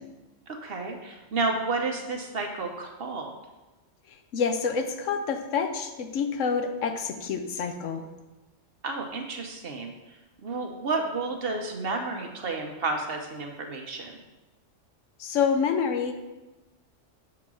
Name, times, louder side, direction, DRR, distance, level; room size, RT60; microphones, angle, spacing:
voice 1, 0.5-3.3 8.8-10.0 10.4-14.2, right 3 dB, 55° right, 3 dB, 0.9 m, -31 dB
voice 2, 4.3-8.0 15.2-16.1, left 6 dB, 80° left, 7 dB, 1.0 m, -27 dB
7.0 x 3.8 x 6.2 m, 1.1 s
omnidirectional pair, 1.3 m